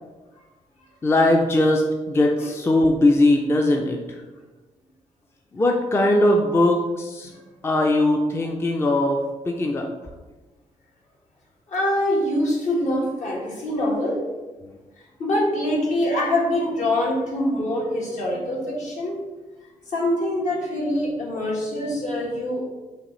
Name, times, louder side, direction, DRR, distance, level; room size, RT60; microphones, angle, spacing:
voice 1, 1.0-4.2 5.5-7.3 7.6-9.2 9.5-9.9 14.6-14.7, left 1 dB, 20° left, 2 dB, 0.4 m, -20 dB
voice 2, 11.7-14.2 15.2-19.1 19.9-22.6, left 1 dB, 65° left, -4 dB, 1.3 m, -24 dB
5.8 x 2.4 x 3.0 m, 1.2 s
cardioid pair, 115°, 14 cm